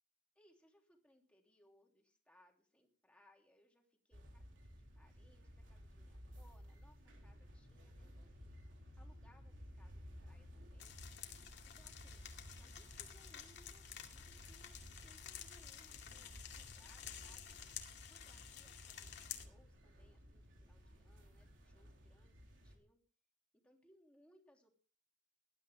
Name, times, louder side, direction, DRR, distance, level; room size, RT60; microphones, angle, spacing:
voice 1, 0.3-8.6 9.0-11.4 11.8-12.2 12.6-14.8 15.0-17.5 18.1-22.4 22.6-23.0 23.6-24.7, equal, 5° left, 1 dB, 3.0 m, -70 dB
sound 1, 4.1-22.7, equal, 85° right, 3.6 m, -56 dB
sound 2, 10.8-19.5, left 10 dB, 65° left, 2.2 m, -52 dB
19.0 x 12.0 x 3.6 m, 0.38 s
head